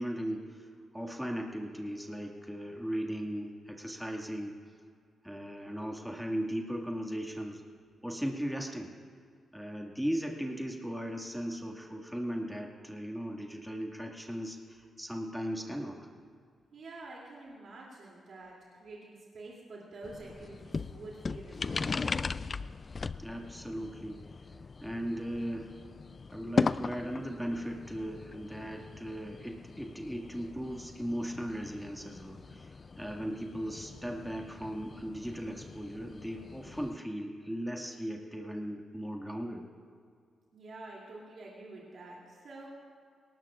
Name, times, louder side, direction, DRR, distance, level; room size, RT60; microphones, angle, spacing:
voice 1, 0.0-4.6 5.2-7.6 8.0-8.9 9.5-16.0 23.2-24.5 24.8-25.7 26.3-39.7, equal, ahead, 0 dB, 2.1 m, -37 dB
voice 2, 16.7-22.1 40.5-42.7, right 2 dB, 65° right, -4 dB, 2.9 m, -48 dB
sound 1, 20.0-37.0, left 4 dB, 45° left, 0.4 m, -39 dB
21.0 x 18.5 x 2.5 m, 2.1 s
cardioid pair, 60°, 0 cm